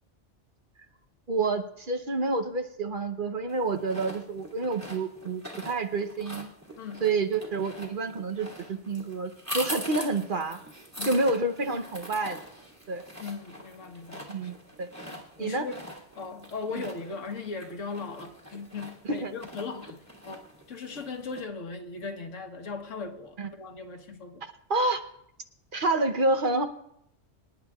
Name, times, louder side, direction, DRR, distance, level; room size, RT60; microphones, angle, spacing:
voice 1, 1.3-6.5 7.0-10.6 11.1-12.4 12.9-13.0 14.3-14.9 15.4-15.7 16.7-16.8 19.1-19.3 23.4-23.5 24.4-25.0 25.7-26.6, right 3 dB, 50° right, 7 dB, 0.9 m, -28 dB
sound 1, 3.5-21.4, equal, 10° right, 1.9 m, -43 dB
voice 2, 13.2-14.2 15.1-15.8 16.1-20.0 20.2-24.5, left 4 dB, 80° left, 5 dB, 1.5 m, -38 dB
26.5 x 10.0 x 2.3 m, 0.77 s
omnidirectional pair, 1.3 m